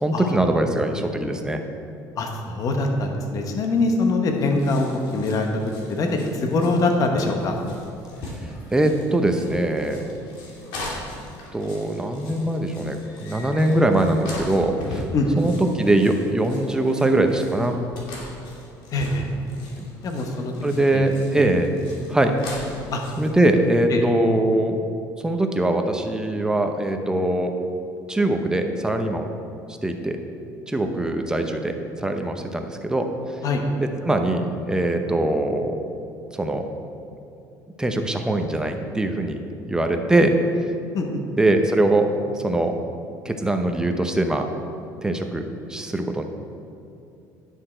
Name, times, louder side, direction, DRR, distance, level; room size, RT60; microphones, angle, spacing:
voice 1, 0.0-1.6 8.7-10.2 11.5-15.1 15.4-17.7 19.8-19.9 20.6-21.7 22.1-22.3 23.2-24.8 25.2-27.5 28.1-29.3 29.8-30.2 30.7-33.1 33.8-35.7 36.4-36.7 37.8-39.4 39.7-40.7 41.4-42.8 43.2-44.5 45.0-45.4 45.7-46.2, right 1 dB, 10° right, 5 dB, 0.7 m, -22 dB
voice 2, 2.2-4.9 5.1-5.6 5.9-7.6 15.1-15.4 18.9-19.3 20.0-20.5 20.9-21.0 22.9-23.0 23.9-24.0 33.4-33.6 40.9-41.2, left 3 dB, 45° left, 3 dB, 1.1 m, -23 dB
sound 1, 4.3-23.3, left 1 dB, 75° left, 2.2 m, -39 dB
9.9 x 6.4 x 4.4 m, 2.7 s
cardioid pair, 115°, 8 cm